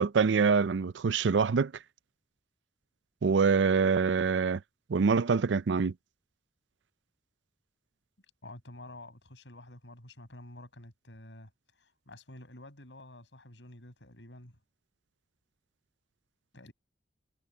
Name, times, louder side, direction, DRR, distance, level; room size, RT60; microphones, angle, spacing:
voice 1, 0.0-1.7 3.2-4.6 4.9-5.9, right 5 dB, 85° right, 0.5 m, -25 dB
voice 2, 8.4-11.5 11.8-14.6 16.5-16.7, left 1 dB, 85° left, 6.2 m, -49 dB
head